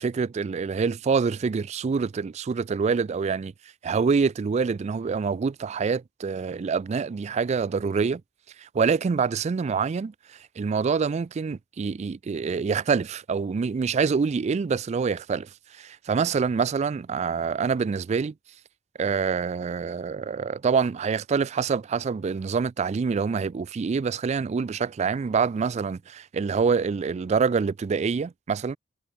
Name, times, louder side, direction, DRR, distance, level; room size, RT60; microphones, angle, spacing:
voice 1, 0.0-3.5 3.8-8.2 8.6-18.3 19.0-28.8, right 5 dB, 35° right, 0.3 m, -26 dB
head